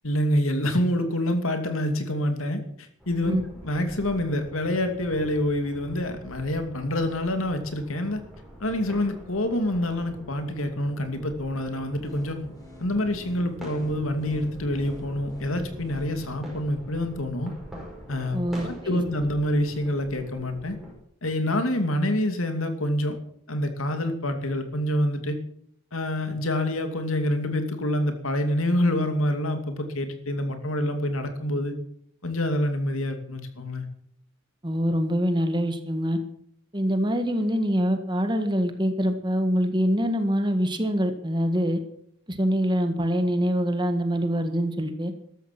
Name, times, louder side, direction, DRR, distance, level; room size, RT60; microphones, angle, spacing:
voice 1, 0.0-3.3 3.6-8.2 8.6-12.4 12.8-17.5 18.1-20.8 21.2-23.2 23.5-25.4 25.9-31.7 32.2-33.9, left 1 dB, 75° left, 7 dB, 2.6 m, -27 dB
sound 1, 3.0-20.9, equal, ahead, 5.3 m, -44 dB
sound 2, 12.0-16.4, equal, 15° left, 7.8 m, -46 dB
voice 2, 18.3-19.0 34.6-36.2 36.7-41.8 42.3-45.1, equal, 20° right, 7 dB, 1.6 m, -24 dB
14.5 x 13.0 x 6.1 m, 0.67 s
head